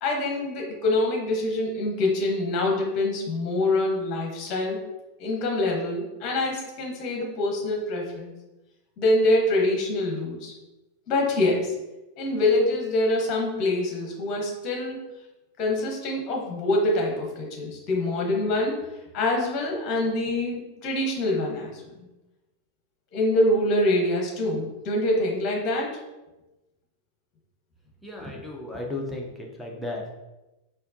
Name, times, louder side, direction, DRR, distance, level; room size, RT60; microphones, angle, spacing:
voice 1, 0.0-4.8 5.2-8.3 9.0-10.5 11.1-11.8 12.2-15.0 15.6-18.8 19.1-21.9 23.1-26.0, left 2 dB, 35° left, 0 dB, 0.9 m, -25 dB
voice 2, 28.0-30.1, left 2 dB, ahead, -3 dB, 0.6 m, -34 dB
4.4 x 2.6 x 2.6 m, 1.0 s
figure-of-eight pair, 90°, 0 cm